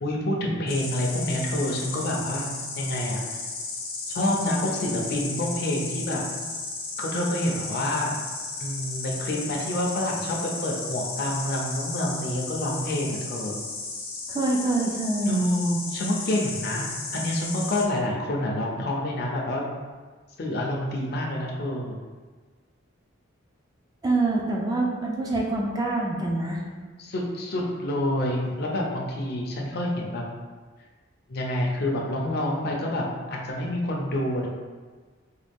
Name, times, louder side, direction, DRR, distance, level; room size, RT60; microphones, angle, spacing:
voice 1, 0.0-3.4 4.1-6.2 7.0-8.2 8.6-10.4 10.6-13.6 15.2-19.7 20.4-22.0 27.0-30.2 31.3-34.5, left 1 dB, 50° left, -2 dB, 0.5 m, -28 dB
Insect, 0.7-17.8, left 3 dB, 90° left, 0.7 m, -34 dB
voice 2, 14.3-15.4 24.0-26.6, right 2 dB, 20° right, -2 dB, 0.3 m, -25 dB
3.9 x 2.2 x 3.4 m, 1.4 s
head